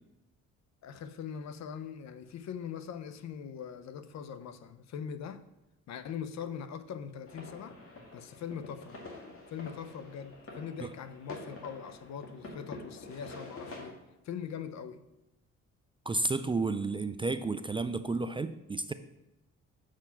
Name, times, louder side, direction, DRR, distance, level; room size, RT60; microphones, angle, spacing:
voice 1, 0.8-5.4 5.9-7.8 8.1-9.0 9.5-14.0 14.2-15.0, left 7 dB, 65° left, 0.7 m, -41 dB
sound 1, 7.3-13.9, left 2 dB, 45° left, 2.0 m, -47 dB
voice 2, 16.1-18.9, right 3 dB, 20° right, 0.3 m, -32 dB
7.1 x 5.0 x 5.7 m
cardioid pair, 90°, 30 cm